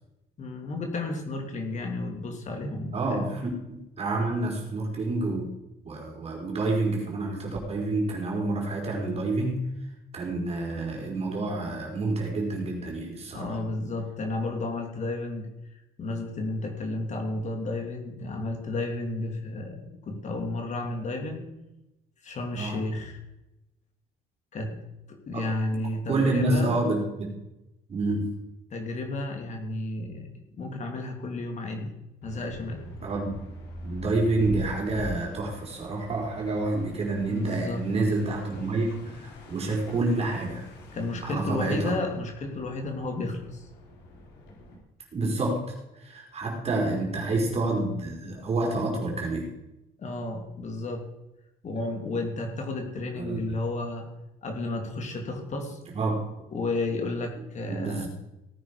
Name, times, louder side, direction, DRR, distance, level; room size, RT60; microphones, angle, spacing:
voice 1, 0.4-3.3 13.3-15.5 16.0-21.4 22.2-23.2 24.5-24.8 25.1-26.8 28.7-31.9 32.2-32.9 37.3-37.8 40.9-43.7 50.0-51.0 51.6-54.1 54.4-55.8 56.5-58.1, left 2 dB, 45° left, 3 dB, 3.1 m, -32 dB
voice 2, 2.9-5.5 5.8-9.7 10.1-13.6 22.5-22.8 25.3-25.5 26.1-27.3 27.9-28.3 33.0-33.4 33.8-40.7 41.2-42.0 45.1-49.5 53.2-53.4 55.9-56.2 57.7-58.1, right 2 dB, 40° right, 0 dB, 4.5 m, -28 dB
sound 1, 32.2-44.8, left 1 dB, 85° left, 4.8 m, -43 dB
17.5 x 9.6 x 5.2 m, 0.94 s
cardioid pair, 110°, 17 cm